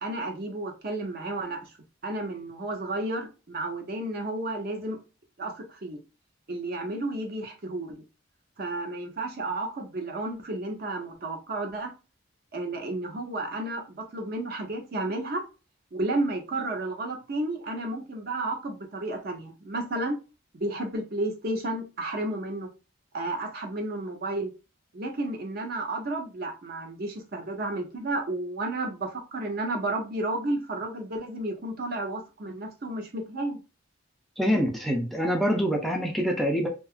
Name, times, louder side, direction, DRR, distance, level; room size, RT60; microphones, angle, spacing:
voice 1, 0.0-1.7 2.0-5.0 5.4-6.0 6.5-8.0 8.6-11.9 12.5-15.4 15.9-20.2 20.5-22.7 23.1-24.5 24.9-33.6, right 2 dB, 50° right, 0.6 m, -32 dB
voice 2, 34.4-36.7, equal, ahead, 0.3 m, -25 dB
2.7 x 2.3 x 2.3 m
head